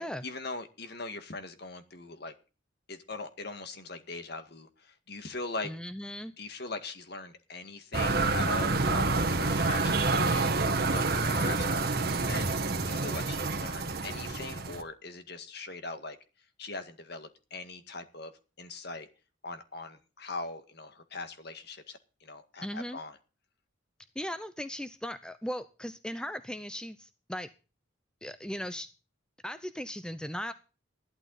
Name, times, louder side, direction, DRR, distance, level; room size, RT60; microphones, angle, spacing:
voice 1, 0.0-2.3 2.9-5.7 6.4-10.6 10.9-12.5 12.8-16.2 16.6-18.3 18.6-19.1 19.4-23.2, left 3 dB, 50° left, 8 dB, 1.9 m, -41 dB
voice 2, 5.6-6.3 22.6-23.0 24.2-27.5 28.2-28.9 29.4-30.5, equal, 5° left, 11 dB, 0.6 m, -37 dB
sound 1, 7.9-14.8, right 3 dB, 50° right, 1.6 m, -28 dB
15.5 x 12.0 x 4.1 m, 0.33 s
head